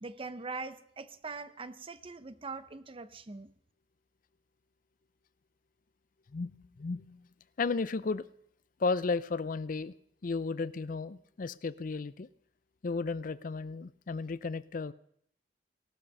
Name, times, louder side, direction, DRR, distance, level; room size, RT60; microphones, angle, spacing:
voice 1, 0.0-3.5, right 4 dB, 30° right, 13 dB, 0.7 m, -42 dB
voice 2, 6.3-7.2 7.6-8.3 8.8-9.9 10.2-12.3 12.8-14.9, left 4 dB, 50° left, 17 dB, 0.5 m, -34 dB
17.5 x 12.5 x 5.4 m, 0.68 s
head